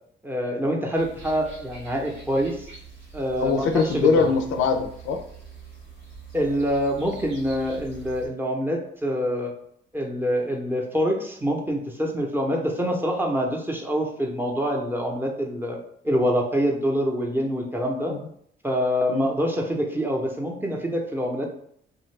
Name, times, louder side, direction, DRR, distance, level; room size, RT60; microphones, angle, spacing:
voice 1, 0.2-2.7 3.1-4.3 6.3-9.5 9.9-15.8 16.0-18.1 18.6-21.5, equal, 10° right, 0 dB, 0.6 m, -25 dB
sound 1, 0.9-8.3, right 5 dB, 90° right, 1.3 m, -44 dB
voice 2, 3.4-5.2 18.1-18.2 19.1-19.3, left 4 dB, 85° left, 5 dB, 0.4 m, -22 dB
2.7 x 2.4 x 3.1 m, 0.67 s
cardioid pair, 90°, 20 cm